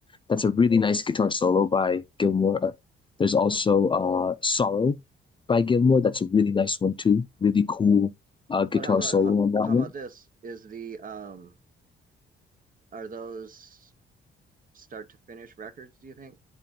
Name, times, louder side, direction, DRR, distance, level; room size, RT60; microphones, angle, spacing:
voice 1, 0.3-2.7 3.2-5.0 5.5-8.1 8.5-9.9, left 5 dB, 25° left, 0.4 m, -22 dB
voice 2, 8.7-9.3 9.6-11.5 12.9-13.9 14.7-16.4, right 5 dB, 45° right, 0.8 m, -40 dB
7.5 x 2.5 x 5.3 m
cardioid pair, 90°, 20 cm